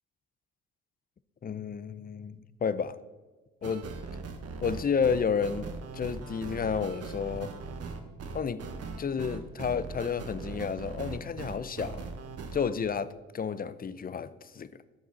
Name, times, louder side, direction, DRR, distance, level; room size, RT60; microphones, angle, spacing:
voice 1, 1.4-3.0 3.6-3.9 4.6-7.5 8.3-8.6 9.0-12.1 12.5-14.7, left 6 dB, 30° left, 16 dB, 0.6 m, -31 dB
sound 1, 3.6-12.7, right 4 dB, 50° right, 1.3 m, -40 dB
14.0 x 6.2 x 4.0 m, 1.3 s
supercardioid pair, 65°, 31 cm